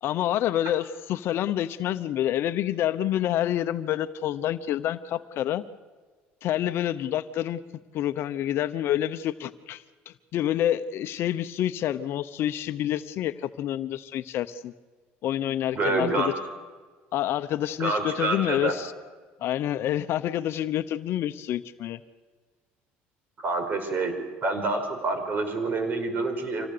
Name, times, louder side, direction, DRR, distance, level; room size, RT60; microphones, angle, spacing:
voice 1, 0.0-5.6 6.4-7.6 7.9-14.7 15.2-16.3 17.1-18.9 19.4-22.0, left 12 dB, 60° left, 12 dB, 0.9 m, -28 dB
voice 2, 15.7-16.3 17.8-18.8 23.4-24.1 24.4-26.7, right 3 dB, 40° right, 6 dB, 5.5 m, -27 dB
26.0 x 17.5 x 6.9 m, 1.4 s
cardioid pair, 105°, 5 cm